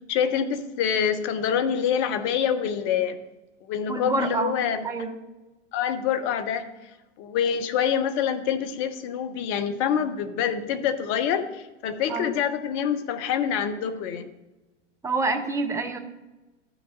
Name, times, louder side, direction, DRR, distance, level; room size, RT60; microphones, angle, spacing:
voice 1, 0.1-3.2 3.7-4.8 5.7-6.7 7.2-14.3, left 8 dB, 35° left, 10 dB, 0.9 m, -26 dB
voice 2, 3.9-4.5 4.8-5.2 12.1-12.3 15.0-16.0, right 3 dB, 10° right, 6 dB, 0.8 m, -27 dB
14.0 x 6.2 x 3.8 m, 1.1 s
figure-of-eight pair, 90°, 37 cm